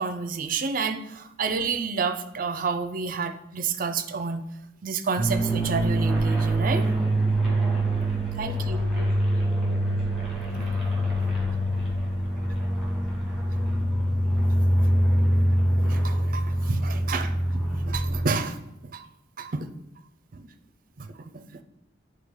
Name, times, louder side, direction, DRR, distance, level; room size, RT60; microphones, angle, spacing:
voice 1, 0.0-4.4 4.8-6.9 8.4-8.8 10.5-10.7 15.8-18.6 18.9-19.1 19.4-19.7 20.3-20.5 21.0-21.6, right 5 dB, 45° right, 8 dB, 0.5 m, -30 dB
sound 1, 5.2-18.3, right 1 dB, ahead, 1.3 m, -24 dB
voice 2, 7.4-8.0 8.6-10.3, left 3 dB, 80° left, -1 dB, 0.8 m, -46 dB
9.5 x 3.3 x 3.7 m, 0.85 s
head